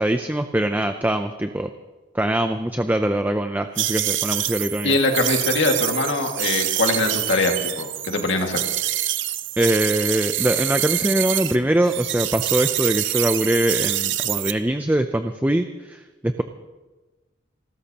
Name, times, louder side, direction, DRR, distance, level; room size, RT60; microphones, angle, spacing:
voice 1, 0.0-1.7 2.1-5.0 9.6-16.4, right 1 dB, 10° right, 7 dB, 0.4 m, -22 dB
sound 1, 3.8-11.6 11.8-14.5, right 13 dB, 65° right, 0.7 m, -26 dB
voice 2, 4.8-8.6, left 2 dB, 65° left, 3 dB, 2.0 m, -22 dB
29.5 x 13.5 x 2.9 m, 1.2 s
head